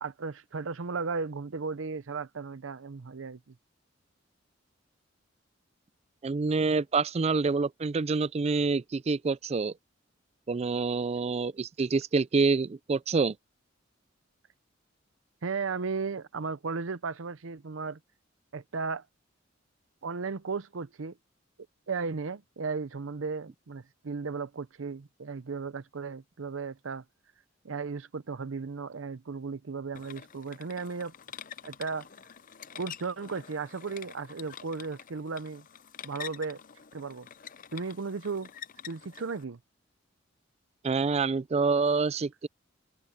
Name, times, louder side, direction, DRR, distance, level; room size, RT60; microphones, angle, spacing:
voice 1, 0.0-3.4 15.4-18.0 18.5-19.0 20.0-21.2 21.9-27.0 27.6-31.1 31.6-32.1 32.7-35.6 36.0-36.6 36.9-37.3 37.7-38.5 38.9-39.6, right 4 dB, 90° right, 0.7 m, -35 dB
voice 2, 6.2-9.7 10.5-13.4 40.8-42.5, right 4 dB, 35° right, 0.4 m, -27 dB
sound 1, 29.9-39.4, left 9 dB, 45° left, 0.6 m, -47 dB
head